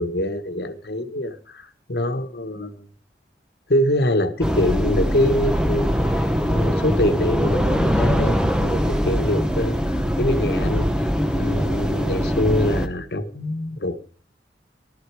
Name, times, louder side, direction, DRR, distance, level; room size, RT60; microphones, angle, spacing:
voice 1, 0.0-2.8 3.7-14.0, left 1 dB, 65° left, 8 dB, 1.3 m, -25 dB
sound 1, 4.4-12.9, equal, 5° right, 0.9 m, -22 dB
14.5 x 12.5 x 4.8 m, 0.42 s
head